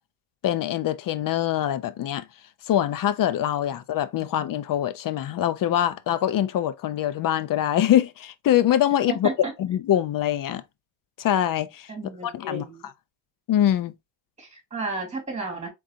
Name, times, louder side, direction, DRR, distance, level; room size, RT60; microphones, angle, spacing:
voice 1, 0.4-2.2 2.6-9.3 9.6-10.6 11.2-11.9 12.2-12.6 13.5-13.9, left 11 dB, 45° left, 0.5 m, -24 dB
voice 2, 9.1-9.5 11.9-12.9 14.4-15.7, right 3 dB, 15° right, 2.5 m, -33 dB
3.9 x 3.8 x 2.7 m
cardioid pair, 120°, 49 cm